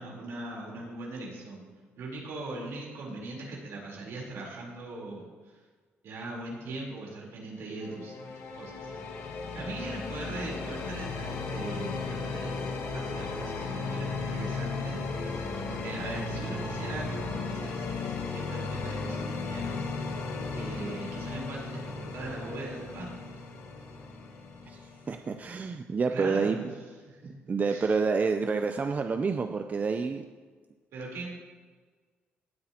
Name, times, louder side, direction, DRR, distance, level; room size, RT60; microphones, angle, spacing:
voice 1, 0.0-1.6 2.0-5.6 6.0-8.2 8.6-9.0 9.5-15.0 15.7-17.9 18.3-19.8 20.5-23.3 26.1-26.7 27.1-28.0 30.9-31.3, right 2 dB, 75° right, -2 dB, 3.9 m, -40 dB
sound 1, 7.8-25.5, left 4 dB, 80° left, 1.7 m, -35 dB
voice 2, 25.1-26.7 27.5-30.2, right 4 dB, 40° right, 7 dB, 0.6 m, -28 dB
18.0 x 8.8 x 3.0 m, 1.5 s
cardioid pair, 80°, 4 cm